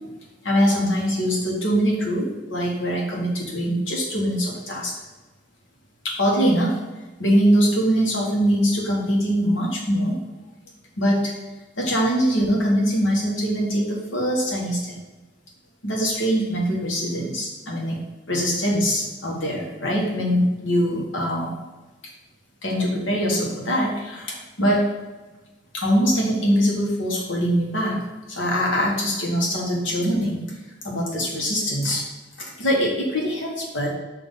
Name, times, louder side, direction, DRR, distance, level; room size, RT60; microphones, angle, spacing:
voice 1, 0.4-4.9 6.0-6.8 7.2-10.2 11.0-11.3 11.8-15.0 15.8-18.0 18.3-21.5 22.6-24.8 25.7-30.4 30.8-32.0 32.6-33.9, equal, 80° left, -2 dB, 1.5 m, -22 dB
5.9 x 3.0 x 5.6 m, 1.2 s
head